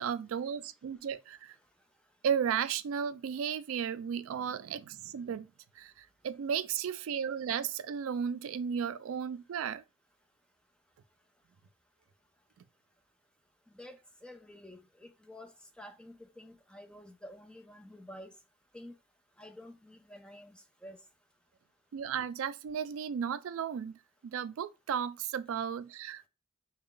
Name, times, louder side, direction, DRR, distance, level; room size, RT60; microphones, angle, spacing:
voice 1, 0.0-1.6 2.2-5.5 5.8-9.8 21.9-24.0 24.2-26.3, right 7 dB, 85° right, 0.3 m, -34 dB
voice 2, 13.7-18.3 18.7-18.9 19.4-21.0, left 1 dB, 5° left, 0.4 m, -50 dB
3.4 x 2.2 x 3.7 m
head